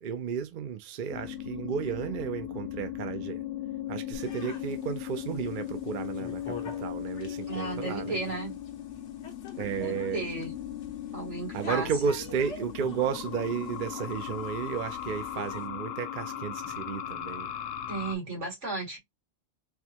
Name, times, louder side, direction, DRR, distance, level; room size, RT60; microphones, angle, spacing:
voice 1, 0.0-3.4 3.9-8.2 9.6-10.2 11.5-17.5, right 7 dB, 55° right, 0.6 m, -33 dB
sound 1, 1.1-18.1, left 11 dB, 65° left, 0.8 m, -38 dB
sound 2, 4.1-15.7, left 4 dB, 85° left, 1.3 m, -47 dB
voice 2, 7.5-8.6 9.8-10.5 11.1-11.9 17.9-19.0, right 3 dB, 85° right, 2.4 m, -34 dB
4.6 x 2.2 x 2.8 m
omnidirectional pair, 1.2 m